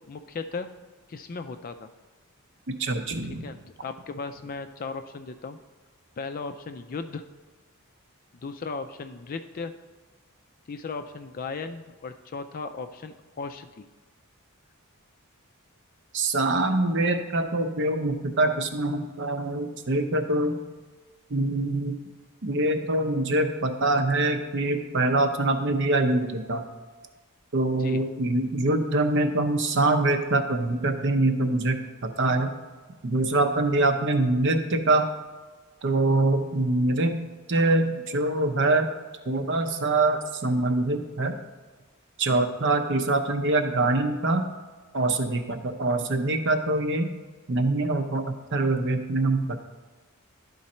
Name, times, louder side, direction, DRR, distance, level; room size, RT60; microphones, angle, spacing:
voice 1, 0.1-0.7 1.1-1.9 3.4-5.6 6.2-7.2 8.4-9.7 10.7-13.9 27.8-28.0, left 4 dB, 40° left, 8 dB, 0.4 m, -36 dB
voice 2, 2.8-3.5 16.1-20.6 21.3-21.9 22.4-26.6 27.5-31.8 32.0-32.5 33.0-35.1 35.8-37.2 37.5-38.9 39.3-41.4 42.2-44.5 44.9-47.1 47.5-49.6, right 2 dB, 55° right, 7 dB, 0.7 m, -24 dB
11.5 x 3.9 x 4.2 m, 1.3 s
head